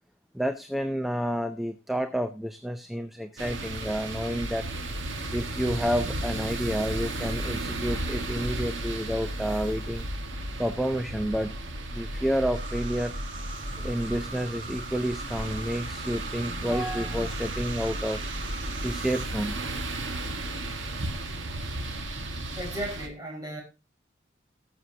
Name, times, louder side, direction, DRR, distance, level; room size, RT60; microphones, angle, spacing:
voice 1, 0.3-4.6 5.3-10.1 10.6-11.6 11.9-13.2 13.8-18.2 18.8-19.6, equal, ahead, 0.5 m, -30 dB
sound 1, 3.4-23.1, right 1 dB, 75° right, 1.7 m, -34 dB
sound 2, 12.5-19.3, right 3 dB, 45° right, 1.7 m, -43 dB
voice 2, 22.6-23.6, right 1 dB, 20° right, 4.9 m, -35 dB
20.5 x 6.9 x 2.8 m
head